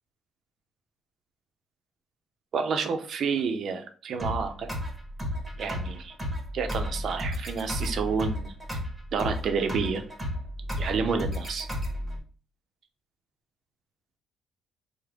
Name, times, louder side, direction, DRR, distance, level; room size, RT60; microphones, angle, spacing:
voice 1, 2.5-4.7 5.6-6.1 6.5-8.8 9.1-10.0 10.8-11.7, right 5 dB, 65° right, 6 dB, 0.5 m, -29 dB
sound 1, 4.2-12.2, equal, 15° right, 1.0 m, -33 dB
3.3 x 2.1 x 3.4 m, 0.39 s
cardioid pair, 90°, 0 cm